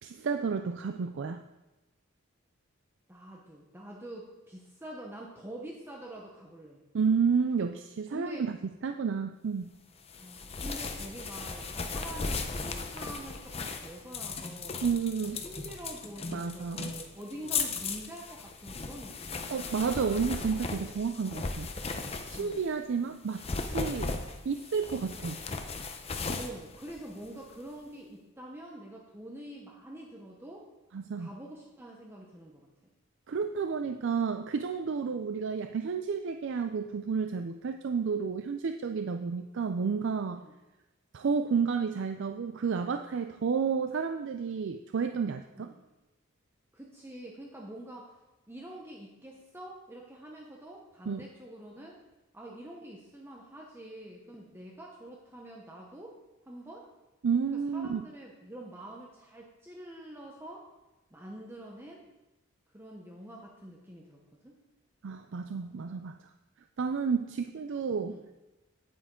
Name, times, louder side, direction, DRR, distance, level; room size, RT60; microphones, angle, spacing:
voice 1, 0.0-1.4 6.9-8.6 8.8-9.7 14.8-15.4 16.3-17.0 19.5-21.7 22.3-24.1 24.4-25.4 30.9-31.3 33.3-40.4 41.1-45.7 51.1-51.2 57.2-58.0 65.0-66.2 66.8-68.2, right 5 dB, 60° right, 7 dB, 0.4 m, -31 dB
voice 2, 3.1-6.8 8.1-8.5 10.2-14.8 15.2-19.8 22.3-22.6 26.3-30.7 31.2-32.9 35.1-35.2 40.3-40.5 45.5-45.8 46.7-48.1 48.5-52.0 52.3-56.1 56.4-56.9 57.7-60.7 61.1-62.0 62.7-64.6 68.1-68.2, right 1 dB, 10° right, -1 dB, 0.9 m, -46 dB
sound 1, 10.1-22.7 23.2-27.6, left 4 dB, 30° left, 0.7 m, -37 dB
9.5 x 8.8 x 3.7 m, 1.0 s
head